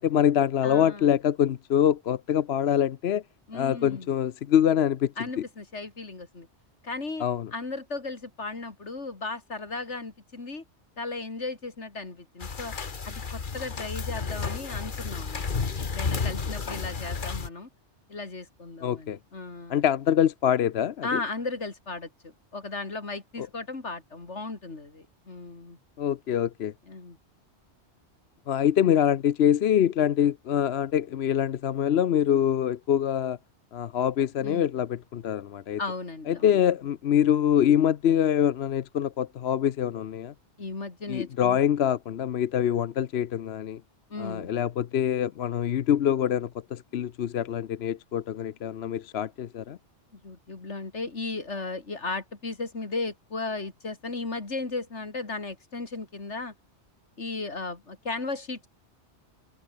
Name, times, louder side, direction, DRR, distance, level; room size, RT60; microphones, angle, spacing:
voice 1, 0.0-3.2 3.5-5.1 7.2-7.5 18.8-19.2 19.7-21.2 23.4-23.5 26.0-26.7 28.5-33.4 33.7-35.8 36.3-40.3 41.1-43.8 44.2-49.8, left 9 dB, 70° left, 0.9 m, -25 dB
voice 2, 0.6-1.1 3.5-4.1 5.2-6.5 6.8-7.2 7.5-10.6 11.0-12.7 13.0-17.7 18.1-19.8 21.0-25.8 26.9-27.2 34.4-34.7 35.8-36.6 40.6-41.6 44.1-44.5 50.1-56.5 57.2-58.7, left 3 dB, 85° left, 3.4 m, -36 dB
sound 1, 12.4-17.5, left 5 dB, 45° left, 1.4 m, -32 dB
omnidirectional pair, 1.2 m